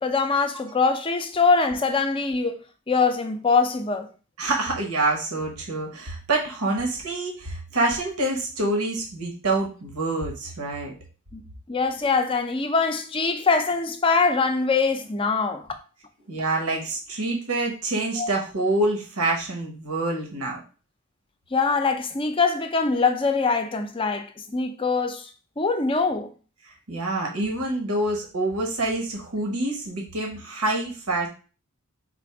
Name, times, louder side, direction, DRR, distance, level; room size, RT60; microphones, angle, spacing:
voice 1, 0.0-2.6 2.9-4.1 11.3-15.7 18.2-18.3 21.5-25.3 25.6-26.3, left 4 dB, 25° left, 0.5 m, -23 dB
voice 2, 4.4-10.9 16.3-20.6 26.9-31.3, right 2 dB, 85° right, 1.1 m, -26 dB
4.4 x 2.5 x 4.6 m
head